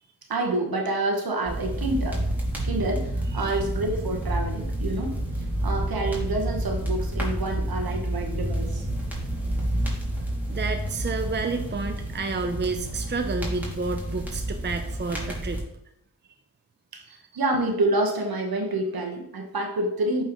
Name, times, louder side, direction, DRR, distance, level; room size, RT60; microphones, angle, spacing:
voice 1, 0.3-2.2 2.6-5.2 5.6-8.9 16.9-20.2, right 2 dB, 60° right, 3 dB, 1.3 m, -28 dB
sound 1, 1.4-15.6, right 1 dB, 5° right, 2.5 m, -29 dB
voice 2, 10.5-15.6 17.1-17.2, right 4 dB, 25° right, 6 dB, 0.7 m, -30 dB
8.4 x 4.5 x 3.1 m, 0.77 s
cardioid pair, 45°, 40 cm